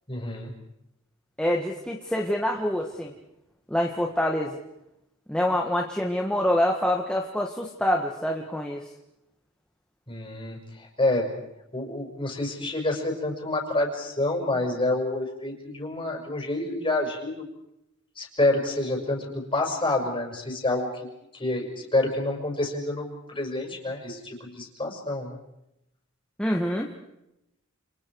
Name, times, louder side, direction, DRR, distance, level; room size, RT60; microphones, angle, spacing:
voice 1, 0.1-0.5 10.1-11.4 11.7-17.4 18.2-20.9 21.3-25.4, left 2 dB, 25° left, 1 dB, 5.9 m, -28 dB
voice 2, 1.4-3.1 3.7-4.6 5.3-8.8 26.4-26.9, left 1 dB, 5° left, 0 dB, 1.7 m, -26 dB
29.5 x 29.0 x 4.8 m, 0.86 s
head